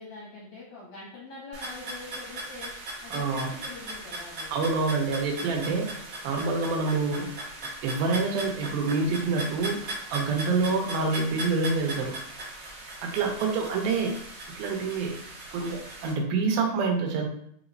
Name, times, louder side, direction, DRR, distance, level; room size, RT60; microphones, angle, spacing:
voice 1, 0.0-2.7 3.0-4.6, left 3 dB, 70° left, -5 dB, 1.7 m, -43 dB
sound 1, 1.5-16.1, right 2 dB, 50° right, 2.0 m, -39 dB
voice 2, 3.1-3.5 4.5-6.0 6.2-7.4 7.8-12.2 13.0-14.2 14.6-15.2 15.5-17.3, right 4 dB, 80° right, 2 dB, 2.6 m, -27 dB
6.4 x 3.0 x 2.6 m, 0.71 s
omnidirectional pair, 4.2 m